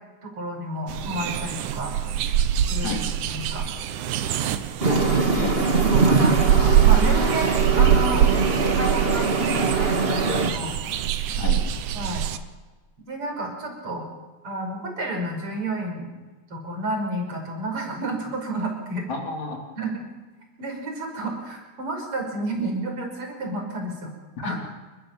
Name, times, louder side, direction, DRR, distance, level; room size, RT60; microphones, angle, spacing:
voice 1, 0.2-1.9 2.7-3.0 3.3-3.7 5.8-8.2 8.8-10.7 11.9-12.3 13.1-14.0 14.4-16.1 16.5-19.1 19.8-20.1 20.6-24.1 24.4-24.6, right 2 dB, 45° right, 2 dB, 6.6 m, -30 dB
sound 1, 0.9-12.4, right 9 dB, 80° right, 2.5 m, -24 dB
sound 2, 4.8-10.5, right 4 dB, 25° right, 1.5 m, -22 dB
voice 2, 4.9-5.6 11.4-11.6 19.1-19.6 24.4-24.6, left 4 dB, 65° left, 1 dB, 4.6 m, -30 dB
29.5 x 14.0 x 7.4 m, 1.3 s
omnidirectional pair, 3.4 m